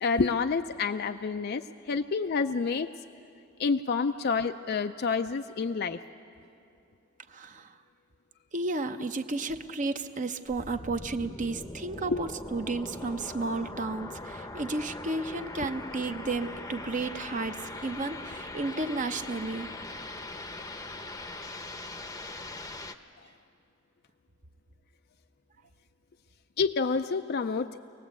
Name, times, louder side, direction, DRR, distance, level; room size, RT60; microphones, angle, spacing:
voice 1, 0.0-2.9 3.6-6.0 12.1-12.2 26.6-27.7, left 5 dB, 50° left, 8 dB, 0.4 m, -28 dB
voice 2, 7.3-7.7 8.5-19.7, right 3 dB, 40° right, 8 dB, 0.8 m, -33 dB
sound 1, 10.5-23.0, left 2 dB, 15° left, 0.8 m, -41 dB
24.5 x 19.0 x 8.2 m, 2.6 s
head